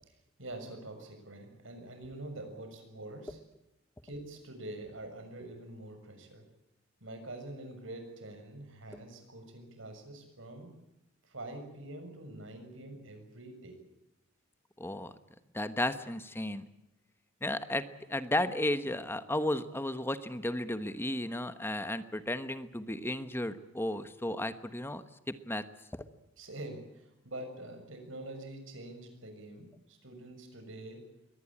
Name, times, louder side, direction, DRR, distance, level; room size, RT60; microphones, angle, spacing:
voice 1, 0.4-3.4 4.0-6.4 7.0-10.7 11.2-13.8 26.4-31.0, right 1 dB, 65° right, 6 dB, 6.6 m, -45 dB
voice 2, 14.8-15.1 15.5-16.6 17.4-17.8 18.1-25.6, left 1 dB, 10° left, 11 dB, 1.2 m, -34 dB
23.0 x 19.0 x 8.6 m, 0.88 s
head